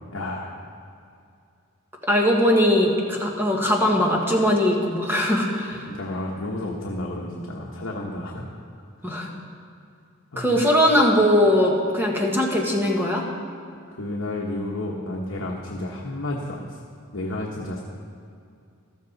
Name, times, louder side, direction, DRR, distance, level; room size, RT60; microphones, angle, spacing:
voice 1, 0.1-0.5 5.9-8.5 10.3-10.6 13.9-16.8 17.1-17.8, left 1 dB, 65° left, -2 dB, 1.2 m, -31 dB
voice 2, 2.1-5.8 9.0-9.3 10.4-13.2, left 1 dB, 10° right, -1 dB, 1.6 m, -20 dB
14.0 x 13.5 x 4.0 m, 2.4 s
head